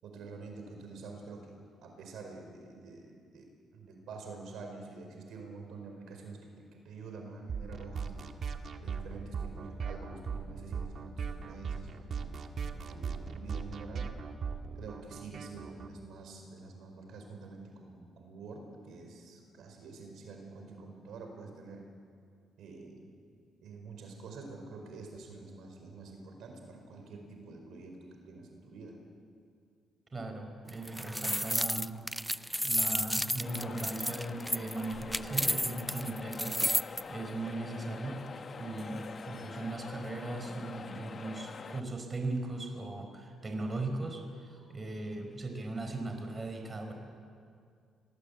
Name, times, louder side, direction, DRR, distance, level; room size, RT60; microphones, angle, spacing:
voice 1, 0.0-8.3 8.8-12.3 12.7-14.1 14.7-21.8 22.6-23.1 23.6-29.0, right 3 dB, 75° right, 3 dB, 4.9 m, -47 dB
sound 1, 7.5-15.9, right 6 dB, 55° right, 1.7 m, -38 dB
voice 2, 30.1-32.2 32.6-38.3 38.5-46.9, right 2 dB, 30° right, 4 dB, 4.6 m, -38 dB
sound 2, 30.7-37.0, equal, ahead, 0.5 m, -32 dB
sound 3, 33.4-41.8, left 5 dB, 45° left, 1.1 m, -45 dB
26.0 x 19.5 x 8.4 m, 2.3 s
cardioid pair, 90°, 0 cm